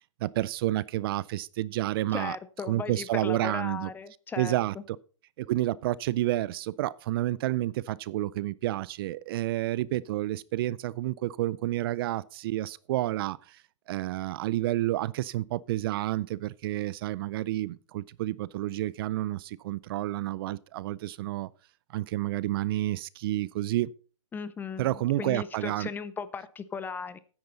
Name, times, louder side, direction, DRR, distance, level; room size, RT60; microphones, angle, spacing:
voice 1, 0.2-2.4 2.7-3.9 4.4-5.0 5.4-13.6 13.9-21.5 21.9-23.9 24.8-25.9, right 15 dB, 50° right, 0.4 m, -30 dB
voice 2, 2.1-4.6 24.3-27.2, left 6 dB, 10° left, 0.6 m, -37 dB
9.7 x 9.4 x 4.0 m
hypercardioid pair, 140°, 16 cm